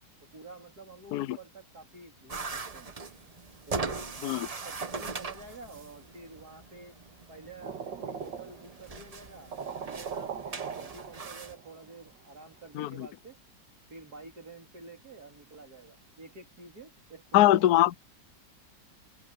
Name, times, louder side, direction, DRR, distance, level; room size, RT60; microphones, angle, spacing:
voice 1, 0.3-2.9 3.7-7.0 7.3-13.4 13.9-17.7, right 3 dB, 60° right, 3.7 m, -49 dB
Broken Door Push, 2.3-11.5, right 4 dB, 30° right, 0.7 m, -40 dB
sound 1, 7.6-8.9 9.2-9.3 9.5-11.7, right 6 dB, 90° right, 2.3 m, -39 dB
voice 2, 12.7-13.1 17.3-17.9, left 14 dB, 70° left, 1.0 m, -22 dB
open air
omnidirectional pair, 1.9 m